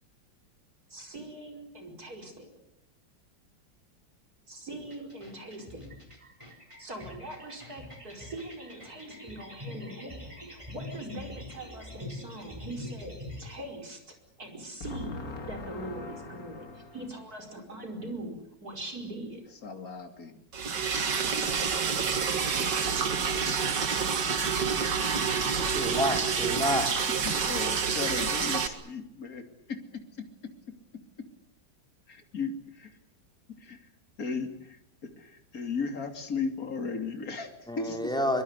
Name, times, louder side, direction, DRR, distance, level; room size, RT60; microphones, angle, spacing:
voice 1, 0.9-2.6 4.5-6.0 6.8-15.2 15.5-19.4, right 1 dB, 50° right, 4 dB, 5.5 m, -42 dB
sound 1, 4.8-13.6, left 2 dB, 15° right, 4.5 m, -44 dB
voice 2, 14.8-17.0 19.6-20.4 20.9-21.7 27.2-29.8 32.1-33.0 33.6-33.9 34.2-38.1, left 4 dB, 50° left, 6 dB, 3.2 m, -37 dB
Liquid, 20.5-28.7, right 6 dB, 65° right, 2.5 m, -28 dB
voice 3, 25.6-27.0 37.7-38.4, equal, ahead, 3 dB, 4.4 m, -29 dB
24.0 x 23.5 x 8.2 m, 0.78 s
omnidirectional pair, 2.0 m